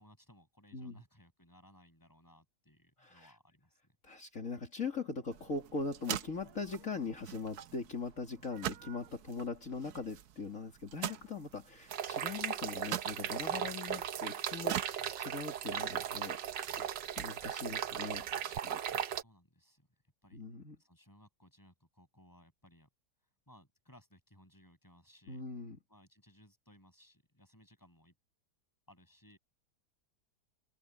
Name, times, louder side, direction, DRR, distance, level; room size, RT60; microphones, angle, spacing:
voice 1, 0.0-4.0 18.7-19.9 20.2-20.4 20.8-22.9 23.5-25.4 25.9-28.1 28.9-29.4, equal, 10° left, 7.6 m, -62 dB
voice 2, 3.0-3.3 4.0-16.4 16.8-18.8 20.3-20.8 25.3-25.8, left 4 dB, 50° left, 3.0 m, -41 dB
sound 1, 5.3-18.6, right 11 dB, 70° right, 1.2 m, -46 dB
sound 2, 11.9-19.2, right 9 dB, 90° right, 1.6 m, -37 dB
omnidirectional pair, 1.8 m